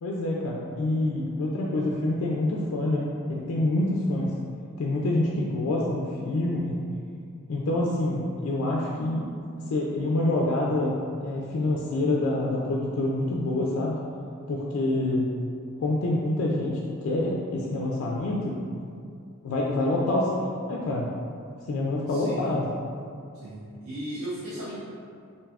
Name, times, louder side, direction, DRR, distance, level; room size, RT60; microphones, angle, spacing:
voice 1, 0.0-4.3 4.8-6.8 7.5-9.2 9.7-14.0 14.5-15.3 15.8-18.6 19.4-20.3 20.7-21.1 21.7-22.7, left 2 dB, 70° left, -3 dB, 0.3 m, -26 dB
voice 2, 22.1-22.6 23.4-24.8, right 1 dB, 65° right, -9 dB, 0.5 m, -36 dB
2.6 x 2.3 x 3.3 m, 2.4 s
head